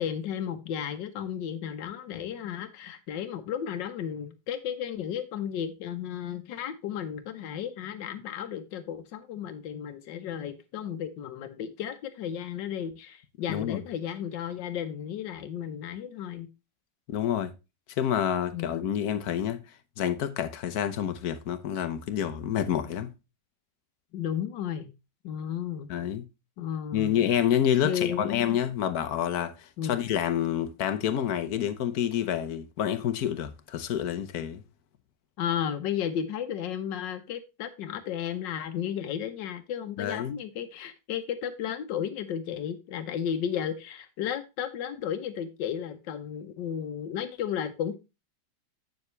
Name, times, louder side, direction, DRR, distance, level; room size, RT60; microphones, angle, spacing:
voice 1, 0.0-16.5 18.5-18.7 24.1-24.9 25.2-25.9 26.6-27.3 27.8-28.6 29.8-30.0 35.4-47.9, left 9 dB, 85° left, 1.5 m, -33 dB
voice 2, 13.5-13.8 17.1-17.5 18.0-19.6 20.0-23.1 25.9-26.3 26.9-34.6 40.0-40.3, left 10 dB, 65° left, 1.3 m, -28 dB
8.0 x 7.1 x 3.2 m
omnidirectional pair, 1.9 m